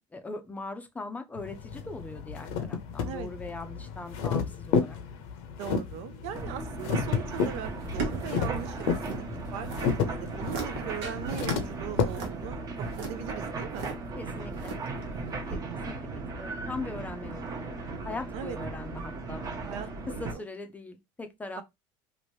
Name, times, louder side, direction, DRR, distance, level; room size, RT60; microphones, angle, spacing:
voice 1, 0.1-5.0 14.2-14.7 15.5-15.6 15.9-16.0 16.3-17.8 18.0-19.4 20.1-21.6, left 3 dB, 15° left, 0.5 m, -40 dB
sound 1, 1.3-12.0, left 6 dB, 75° left, 0.7 m, -32 dB
voice 2, 5.6-9.2 9.5-13.9 15.5-15.9 18.3-18.6 19.6-20.4 21.6-21.7, right 10 dB, 70° right, 0.5 m, -39 dB
sound 2, 6.3-20.3, right 3 dB, 30° right, 0.8 m, -37 dB
sound 3, 7.3-9.2 9.4-9.9 10.3-10.7 11.0-11.6 11.9-13.9 14.5-15.1 15.5-15.6, right 3 dB, 85° right, 1.1 m, -36 dB
3.0 x 2.5 x 3.1 m
cardioid pair, 135°, 12 cm